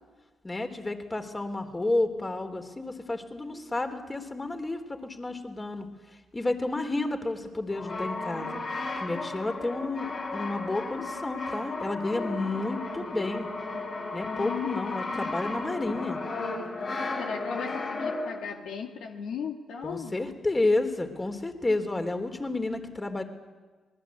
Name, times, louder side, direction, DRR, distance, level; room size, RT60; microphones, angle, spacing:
voice 1, 0.4-5.9 6.3-8.6 9.0-13.5 14.1-16.2 19.8-23.2, left 2 dB, 25° left, 7 dB, 3.6 m, -31 dB
Brass instrument, 7.7-18.5, left 2 dB, 55° left, 6.6 m, -34 dB
voice 2, 14.2-15.5 17.2-20.2, left 7 dB, 75° left, 2 dB, 2.4 m, -37 dB
25.5 x 20.5 x 8.6 m, 1.3 s
hypercardioid pair, 50°, 0 cm